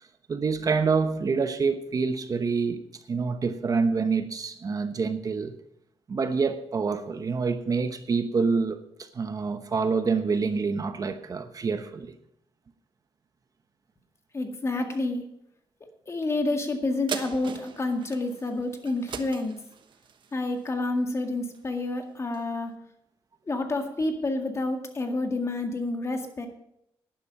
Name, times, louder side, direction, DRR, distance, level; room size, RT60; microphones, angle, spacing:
voice 1, 0.3-2.8 3.1-5.5 6.1-12.1, right 4 dB, 40° right, 0.9 m, -27 dB
voice 2, 14.3-15.2 16.1-19.5 20.3-22.7 23.5-26.5, left 2 dB, 30° left, 1.9 m, -29 dB
sound 1, 17.1-21.8 22.3-22.4, right 7 dB, 60° right, 1.1 m, -40 dB
11.5 x 10.5 x 5.4 m
cardioid pair, 105°, 9 cm